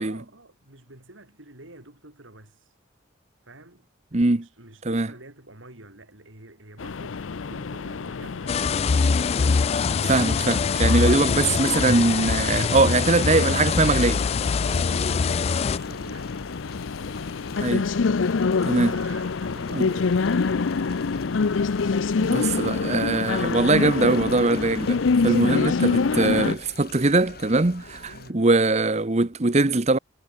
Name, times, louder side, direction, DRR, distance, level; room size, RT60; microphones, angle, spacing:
voice 1, 0.0-2.7 3.4-8.9 14.6-16.3 18.8-21.1 28.1-28.5, right 2 dB, 90° right, 5.7 m, -48 dB
voice 2, 4.1-4.5 4.8-5.1 10.0-14.2 17.6-17.9 18.6-18.9 19.7-19.9 22.2-30.0, right 2 dB, 35° right, 0.9 m, -22 dB
sound 1, 6.8-26.5, left 4 dB, 85° left, 0.6 m, -27 dB
sound 2, 8.5-15.8, left 5 dB, 30° left, 0.3 m, -23 dB
sound 3, 8.9-28.3, left 3 dB, 55° left, 7.6 m, -44 dB
head